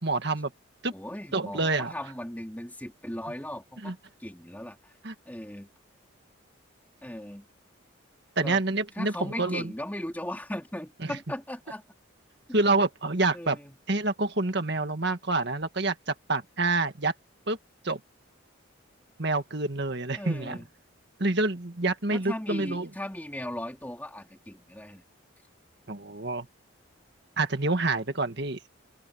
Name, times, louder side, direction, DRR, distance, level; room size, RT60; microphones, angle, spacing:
voice 1, 0.0-0.5 0.8-0.9 1.3-1.9 3.8-3.9 5.0-5.1 8.4-9.1 9.4-9.6 11.0-11.1 12.5-13.6 13.9-17.1 17.5-17.6 17.8-18.0 19.2-20.6 21.2-22.9 25.9-26.5 27.4-28.6, right 3 dB, 55° right, 1.9 m, -27 dB
voice 2, 0.9-3.9 4.2-5.0 5.3-5.7 7.0-7.4 8.4-8.6 8.9-11.8 13.3-13.8 20.1-20.7 22.1-25.0, left 1 dB, 10° left, 3.9 m, -37 dB
open air
head